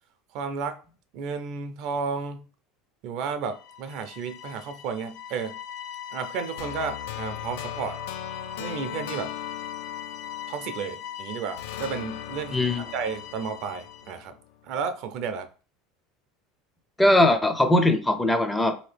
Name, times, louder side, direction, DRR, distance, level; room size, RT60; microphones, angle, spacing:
voice 1, 0.3-0.8 1.1-2.5 3.0-5.6 6.1-8.0 8.6-9.3 10.5-14.3 14.6-15.5, right 6 dB, 60° right, 0.5 m, -32 dB
sound 1, 3.4-14.2, left 10 dB, 50° left, 0.8 m, -40 dB
sound 2, 6.6-11.1 11.6-14.7, left 10 dB, 80° left, 0.4 m, -39 dB
voice 2, 12.5-12.9 17.0-18.8, left 1 dB, 10° left, 0.4 m, -20 dB
3.4 x 2.8 x 3.3 m
supercardioid pair, 115°, 0 cm